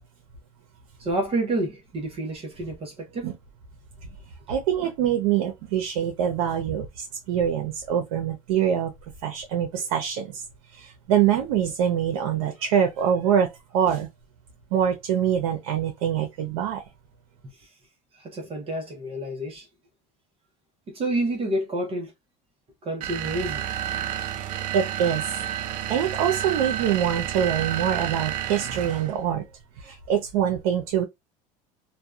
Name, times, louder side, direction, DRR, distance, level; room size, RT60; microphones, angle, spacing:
voice 1, 1.0-3.3 17.4-17.7 18.1-19.7 20.9-22.1 22.8-23.6, right 1 dB, 30° right, 0.8 m, -29 dB
voice 2, 4.5-8.9 9.2-10.4 10.7-14.1 14.7-16.8 24.7-25.3 25.9-29.4 29.8-31.0, right 9 dB, 90° right, 0.7 m, -24 dB
sound 1, 23.0-29.2, right 11 dB, 50° right, 0.4 m, -30 dB
2.7 x 2.2 x 2.3 m
supercardioid pair, 125°, 18 cm